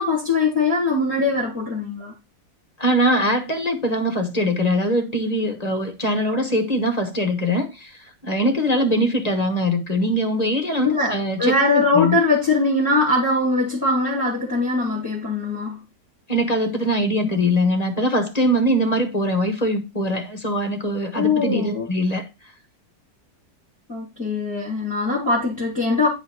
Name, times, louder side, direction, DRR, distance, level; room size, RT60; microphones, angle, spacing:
voice 1, 0.0-2.1 10.8-11.1 11.4-15.8 21.1-21.9 23.9-26.1, left 3 dB, 5° right, 2.7 m, -21 dB
voice 2, 2.8-12.2 16.3-22.3, equal, 25° left, 0.9 m, -22 dB
10.0 x 5.0 x 4.2 m
omnidirectional pair, 2.0 m